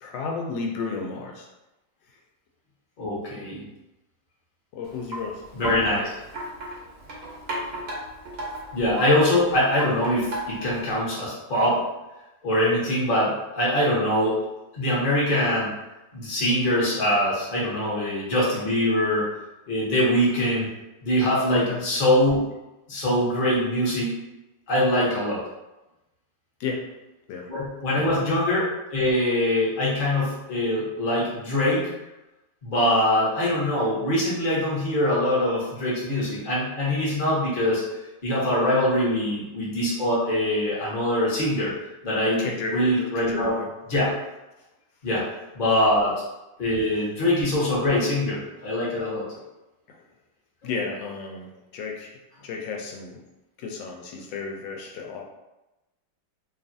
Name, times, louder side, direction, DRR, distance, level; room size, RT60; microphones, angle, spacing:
voice 1, 0.0-1.5 4.7-5.4 21.5-21.8 26.6-26.9 27.3-27.5 27.9-28.3 42.4-42.8 43.2-43.7 49.9-50.0 50.6-52.1 52.4-53.2 53.6-55.2, left 4 dB, 85° left, 1 dB, 1.3 m, -33 dB
voice 2, 3.0-3.6 5.5-6.1 8.7-11.8 12.4-14.3 14.7-15.7 16.1-19.3 19.7-20.7 21.0-22.4 22.9-24.1 24.7-25.4 27.5-31.9 32.6-37.8 38.2-41.7 42.0-42.4 42.7-43.5 43.9-44.1 45.0-45.2 45.5-46.1 46.6-49.3, left 1 dB, 35° left, -7 dB, 0.9 m, -23 dB
Wind chime, 4.8-11.0, right 1 dB, 65° right, 0.6 m, -36 dB
3.0 x 2.4 x 2.5 m, 0.99 s
omnidirectional pair, 2.0 m